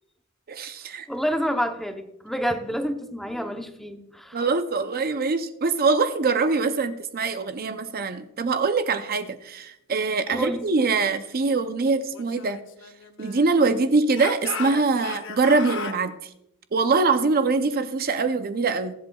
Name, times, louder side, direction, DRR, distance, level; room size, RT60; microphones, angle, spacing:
voice 1, 0.5-1.1 4.3-12.6 13.2-16.1 16.7-18.9, right 4 dB, 45° right, 9 dB, 0.6 m, -23 dB
voice 2, 1.1-4.4 10.3-10.7, equal, ahead, 5 dB, 0.8 m, -28 dB
Speech / Shout, 12.1-13.7 14.1-16.0, left 5 dB, 60° left, 0.8 m, -36 dB
23.0 x 7.8 x 2.3 m, 0.82 s
head